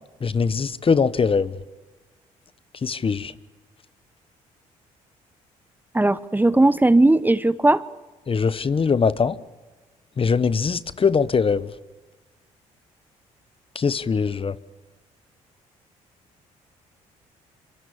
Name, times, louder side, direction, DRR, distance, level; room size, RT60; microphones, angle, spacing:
voice 1, 0.2-1.6 2.8-3.3 8.3-9.4 10.2-11.7 13.7-14.5, left 5 dB, 35° left, 1.2 m, -21 dB
voice 2, 5.9-7.8, right 2 dB, 10° right, 0.9 m, -17 dB
27.0 x 23.5 x 7.1 m
supercardioid pair, 65°, 15 cm